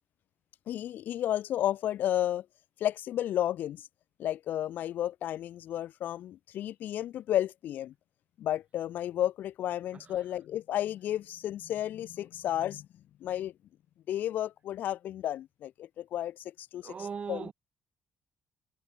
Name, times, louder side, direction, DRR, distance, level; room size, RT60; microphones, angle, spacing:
voice 1, 0.7-2.5 2.8-3.8 4.2-7.9 8.4-12.9 13.2-13.5 14.1-16.9 17.3-17.5, left 12 dB, 70° left, 0.6 m, -32 dB
voice 2, 9.9-10.2 16.8-17.5, right 6 dB, 40° right, 1.5 m, -39 dB
cardioid pair, 115°, 3 cm